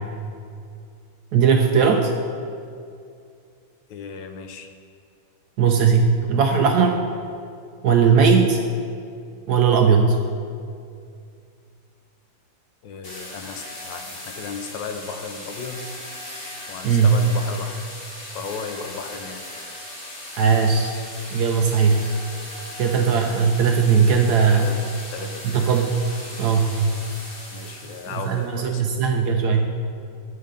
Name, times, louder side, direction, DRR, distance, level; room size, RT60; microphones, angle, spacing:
voice 1, 1.3-2.1 5.6-7.0 7.8-8.6 9.5-10.2 16.8-17.1 20.4-20.9 21.3-22.1 22.8-24.7 25.4-26.0 26.4-27.0 28.2-29.6, right 6 dB, 70° right, 3 dB, 1.0 m, -18 dB
voice 2, 3.9-4.7 6.2-6.3 12.8-15.9 16.7-17.8 18.3-19.4 24.5-24.8 25.1-25.6 27.5-28.9, left 5 dB, 75° left, 6 dB, 1.3 m, -35 dB
sound 1, 13.0-28.5, left 1 dB, 35° left, 1.3 m, -38 dB
11.0 x 3.8 x 5.1 m, 2.3 s
omnidirectional pair, 2.1 m